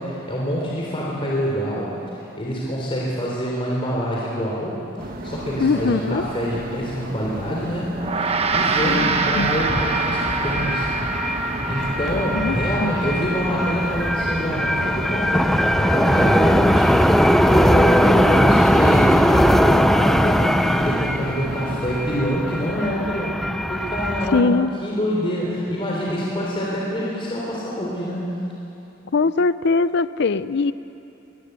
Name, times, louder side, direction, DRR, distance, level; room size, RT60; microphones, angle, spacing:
voice 1, 0.0-7.9 8.2-10.9 11.7-23.3 23.7-24.5 24.8-28.3, equal, 25° left, -4 dB, 3.6 m, -26 dB
sound 1, 5.0-22.2, right 1 dB, 45° right, 1.8 m, -34 dB
voice 2, 5.6-6.2 8.8-9.5 12.3-12.9 24.3-24.7 29.1-30.7, left 4 dB, 60° left, 15 dB, 0.5 m, -21 dB
Gong, 8.0-17.5, right 4 dB, 30° right, 1.1 m, -27 dB
sound 2, 8.5-24.4, equal, ahead, 0.6 m, -20 dB
23.0 x 20.0 x 8.2 m, 2.9 s
head